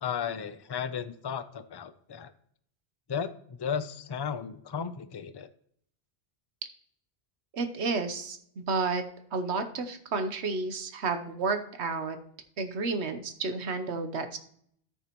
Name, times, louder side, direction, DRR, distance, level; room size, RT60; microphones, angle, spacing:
voice 1, 0.0-2.3 3.1-3.3 3.6-5.5, left 7 dB, 35° left, 12 dB, 0.4 m, -34 dB
voice 2, 7.5-9.0 9.3-12.2 12.6-14.4, right 4 dB, 85° right, 8 dB, 1.2 m, -31 dB
13.5 x 6.5 x 3.0 m, 0.66 s
omnidirectional pair, 1.1 m